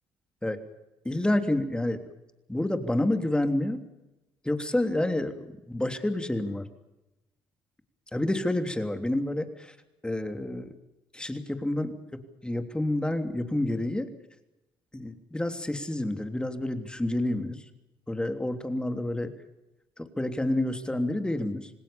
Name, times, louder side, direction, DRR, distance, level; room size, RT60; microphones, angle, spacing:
voice 1, 1.0-2.0 2.5-3.8 4.4-6.7 8.1-9.8 10.0-10.7 11.1-14.1 14.9-17.7 18.1-19.3 20.0-21.7, left 1 dB, 10° left, 7 dB, 3.2 m, -29 dB
27.0 x 19.0 x 7.1 m, 0.97 s
cardioid pair, 80°, 10 cm